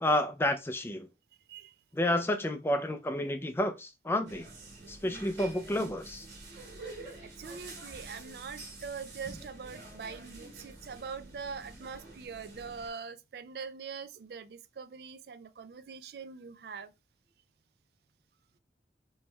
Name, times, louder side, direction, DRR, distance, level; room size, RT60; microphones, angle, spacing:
voice 1, 0.0-1.1 1.9-4.5 4.9-6.3, left 1 dB, 15° left, 0.4 m, -30 dB
sound 1, 4.3-12.9, right 2 dB, 85° right, 1.9 m, -48 dB
voice 2, 6.9-16.9, right 5 dB, 60° right, 0.4 m, -43 dB
4.4 x 3.1 x 2.2 m
head